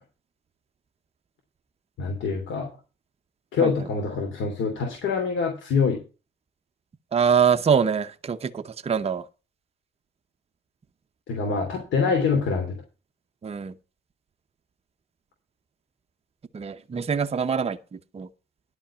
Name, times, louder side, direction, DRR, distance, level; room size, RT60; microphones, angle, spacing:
voice 1, 2.0-2.7 3.5-6.0 11.3-12.7, left 5 dB, 70° left, 3.1 m, -25 dB
voice 2, 7.1-9.3 13.4-13.7 16.5-18.3, right 7 dB, 30° right, 0.7 m, -24 dB
11.0 x 5.4 x 7.2 m
cardioid pair, 90°, 20 cm